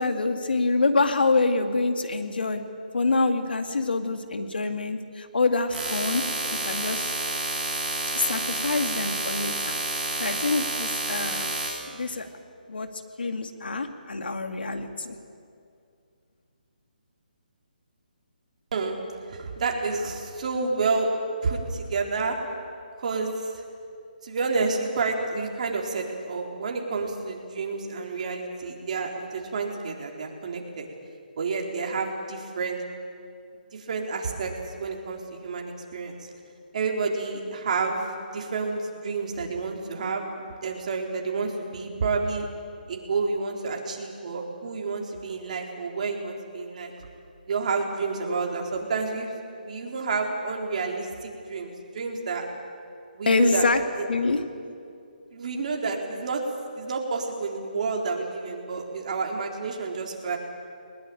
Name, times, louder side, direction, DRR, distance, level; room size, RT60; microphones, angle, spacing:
voice 1, 0.0-2.6 2.9-6.2 6.6-7.1 8.1-9.8 10.2-11.5 11.9-12.3 12.7-12.9 13.2-15.1 53.3-53.8 54.1-54.4, left 3 dB, 80° left, 7 dB, 2.3 m, -25 dB
sound 1, 5.7-11.7, right 2 dB, 5° right, 7.1 m, -29 dB
voice 2, 19.3-21.1 21.4-22.4 23.0-23.6 24.2-30.9 31.4-32.8 33.7-34.5 34.8-36.3 36.7-42.5 42.9-47.1 47.5-49.3 49.6-52.5 53.1-53.7 54.0-54.1 55.3-56.4 56.7-60.4, right 4 dB, 50° right, 1 dB, 3.9 m, -29 dB
21.0 x 20.5 x 9.2 m, 2.4 s
hypercardioid pair, 155°, 5 cm